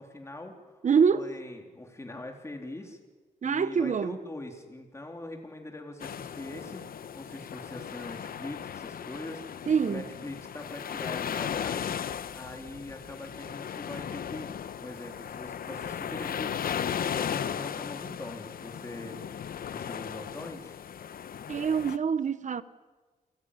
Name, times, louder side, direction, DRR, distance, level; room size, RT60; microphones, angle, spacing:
voice 1, 0.0-0.8 1.1-3.0 3.4-14.5 14.8-16.6 17.1-20.8, left 2 dB, 20° left, 3.4 m, -42 dB
voice 2, 0.8-1.3 3.4-4.2 9.7-10.0 21.5-22.6, right 6 dB, 55° right, 1.0 m, -25 dB
sound 1, 6.0-22.0, left 8 dB, 75° left, 0.9 m, -36 dB
29.0 x 16.5 x 9.9 m
wide cardioid pair, 110°, 15 cm